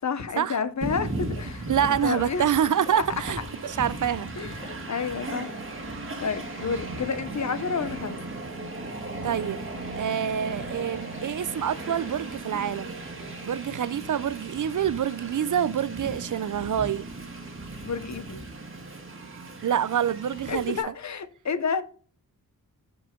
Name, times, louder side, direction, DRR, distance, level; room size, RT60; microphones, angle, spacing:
voice 1, 0.0-2.5 3.0-3.1 4.3-5.9 6.2-8.2 17.8-18.4 20.5-21.8, left 5 dB, 50° left, 0.8 m, -30 dB
Train, 0.8-20.8, right 2 dB, 35° right, 1.7 m, -37 dB
sound 1, 1.3-1.6 2.1-2.4 2.8-3.1 3.4-4.8 6.6-6.8 9.3-13.7, left 1 dB, 25° left, 2.9 m, -50 dB
voice 2, 1.7-4.3 9.2-9.6 10.0-12.9 13.4-17.1 19.6-20.8, right 9 dB, 60° right, 0.5 m, -26 dB
13.0 x 4.8 x 3.7 m
wide cardioid pair, 170°, 36 cm